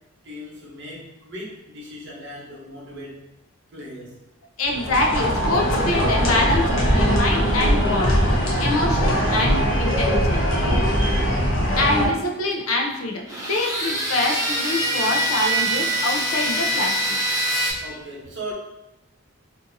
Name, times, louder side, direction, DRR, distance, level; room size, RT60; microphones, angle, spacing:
voice 1, 0.2-3.2 3.7-4.2 17.8-18.5, equal, 60° right, -4 dB, 0.8 m, -37 dB
voice 2, 4.6-8.2 8.6-10.4 11.8-17.2, left 2 dB, 90° left, 2 dB, 0.5 m, -25 dB
sound 1, 4.6-12.1, equal, 65° left, 0.8 m, -21 dB
sound 2, 13.3-17.7, equal, 15° right, 0.6 m, -24 dB
2.6 x 2.5 x 2.6 m, 0.97 s
head